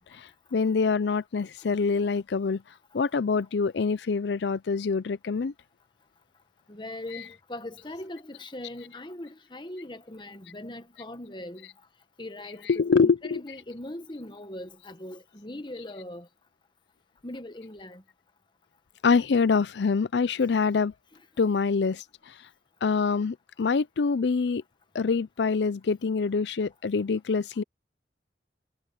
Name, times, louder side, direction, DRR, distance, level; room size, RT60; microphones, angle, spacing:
voice 1, 0.0-2.6 2.9-5.5 7.1-7.2 12.6-13.4 19.0-20.9 21.4-22.0 22.8-24.6 24.9-27.6, left 5 dB, 75° left, 0.5 m, -25 dB
voice 2, 6.7-11.7 12.2-16.3 17.2-18.0 21.1-21.2, left 1 dB, 25° left, 1.3 m, -40 dB
head